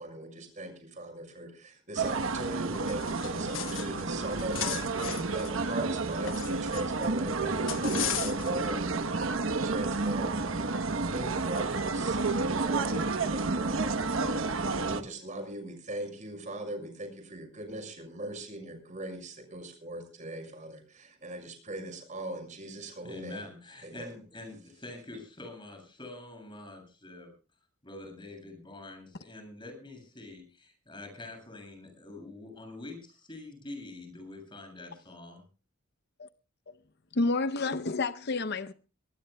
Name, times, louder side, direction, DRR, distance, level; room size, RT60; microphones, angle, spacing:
voice 1, 0.0-10.7 11.1-23.5 23.8-24.1, right 1 dB, 35° right, 6.3 m, -40 dB
sound 1, 2.0-15.0, right 3 dB, 70° right, 1.1 m, -30 dB
sound 2, 2.9-4.0 4.3-7.1 7.7-8.7, left 11 dB, 70° left, 1.1 m, -36 dB
voice 2, 23.0-27.3 27.8-35.4, left 2 dB, 25° left, 7.5 m, -45 dB
voice 3, 37.1-38.7, left 3 dB, 50° left, 0.7 m, -29 dB
23.5 x 19.0 x 2.3 m
head